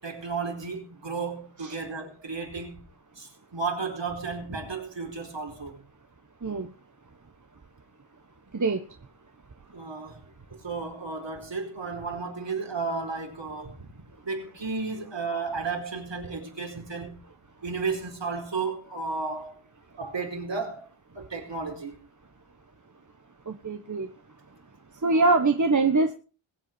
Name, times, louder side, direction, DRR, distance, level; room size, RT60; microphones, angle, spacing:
voice 1, 0.0-2.8 3.2-5.9 9.7-10.2 10.5-13.9 14.2-17.2 17.6-19.6 20.0-20.9 21.1-22.0 25.1-25.4, right 4 dB, 60° right, 4.6 m, -33 dB
voice 2, 23.5-24.1 25.0-26.1, right 3 dB, 35° right, 1.3 m, -23 dB
22.0 x 8.2 x 4.5 m
wide cardioid pair, 75°, 50 cm